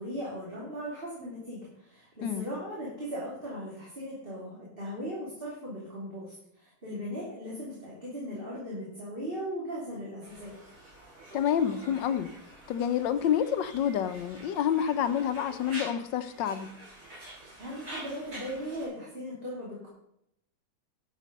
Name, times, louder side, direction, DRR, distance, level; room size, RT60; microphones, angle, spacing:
voice 1, 0.0-10.5 17.6-19.9, equal, 30° right, 3.2 m, -38 dB
Conversation, 10.2-18.9, right 1 dB, 60° right, 5.5 m, -47 dB
voice 2, 11.3-12.3 12.7-16.7, left 9 dB, 85° left, 1.4 m, -28 dB
11.5 x 7.4 x 5.2 m
omnidirectional pair, 1.9 m